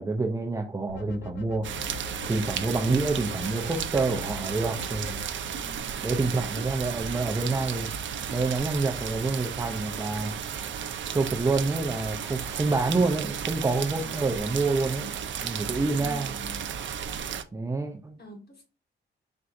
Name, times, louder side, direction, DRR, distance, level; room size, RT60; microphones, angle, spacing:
voice 1, 0.0-1.7 2.3-5.2 6.0-7.9 8.3-10.3 11.1-15.1 15.4-16.4 17.5-18.2, right 3 dB, 15° right, 2 dB, 0.4 m, -27 dB
sound 1, 0.9-5.3, left 9 dB, 70° left, 0.5 m, -43 dB
sound 2, 1.6-17.4, right 7 dB, 70° right, 0.5 m, -34 dB
voice 2, 5.5-5.9 6.2-6.4 12.7-13.2 14.0-14.5 15.7-16.6 18.2-18.6, left 2 dB, 55° left, 2 dB, 1.6 m, -46 dB
4.3 x 3.7 x 2.5 m, 0.35 s
wide cardioid pair, 170°, 20 cm